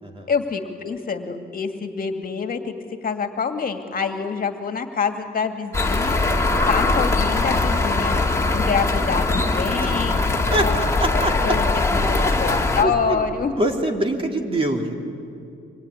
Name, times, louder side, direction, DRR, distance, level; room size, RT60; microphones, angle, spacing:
voice 1, 0.3-2.7 3.0-6.2 6.7-8.2 8.5-10.2 10.5-13.5, left 5 dB, 45° left, 5 dB, 2.2 m, -26 dB
sound 1, 5.7-12.8, left 2 dB, 15° left, 2.4 m, -21 dB
voice 2, 10.5-11.6 12.1-12.3 12.8-13.3 13.6-14.9, right 1 dB, 25° right, 2 dB, 3.3 m, -24 dB
25.0 x 21.5 x 9.8 m, 2.5 s
cardioid pair, 90°, 20 cm